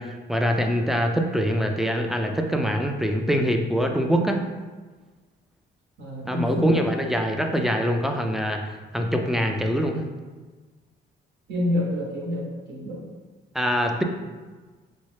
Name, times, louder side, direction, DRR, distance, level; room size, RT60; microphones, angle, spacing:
voice 1, 0.0-4.5 6.3-10.0 13.5-14.0, equal, ahead, 3 dB, 0.3 m, -24 dB
voice 2, 6.0-7.1 11.5-13.0, left 1 dB, 65° right, -4 dB, 0.8 m, -28 dB
4.3 x 2.1 x 3.1 m, 1.3 s
cardioid pair, 90°, 20 cm